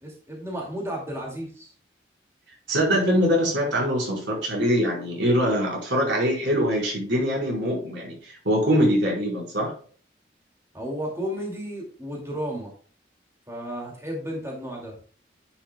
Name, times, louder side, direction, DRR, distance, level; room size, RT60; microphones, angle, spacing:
voice 1, 0.0-1.7 10.7-12.7 13.5-14.9, equal, 15° right, -1 dB, 2.3 m, -33 dB
voice 2, 2.7-9.7, equal, 85° right, -2 dB, 4.5 m, -23 dB
10.0 x 7.7 x 2.3 m, 0.43 s
head